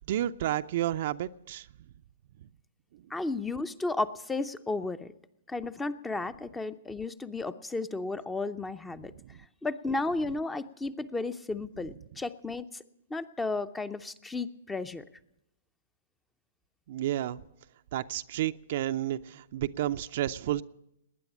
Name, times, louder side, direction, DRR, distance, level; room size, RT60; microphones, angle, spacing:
voice 1, 0.1-1.7 9.3-9.4 16.9-17.4 17.9-20.6, right 13 dB, 55° right, 11 dB, 0.5 m, -31 dB
voice 2, 3.1-5.1 5.5-9.1 9.6-12.6 13.1-15.0, left 3 dB, 10° left, 13 dB, 0.6 m, -33 dB
19.5 x 9.6 x 7.2 m, 0.83 s
hypercardioid pair, 120°, 0 cm